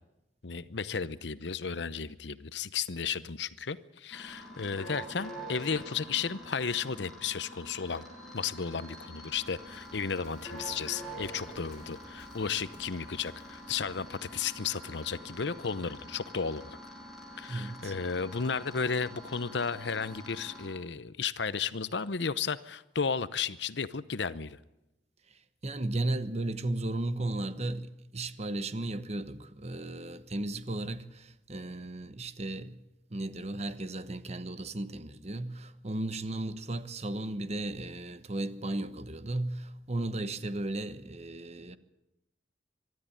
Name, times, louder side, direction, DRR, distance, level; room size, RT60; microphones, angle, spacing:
voice 1, 0.4-8.0 8.3-16.8 17.4-24.6, left 5 dB, 70° left, 0.8 m, -34 dB
sound 1, 4.1-20.7, equal, ahead, 6.9 m, -46 dB
Waves surf, 9.2-14.5, left 1 dB, 40° left, 3.2 m, -58 dB
voice 2, 17.5-17.9 25.3-32.8 33.1-41.8, right 2 dB, 35° right, 1.1 m, -35 dB
24.5 x 12.5 x 9.9 m
head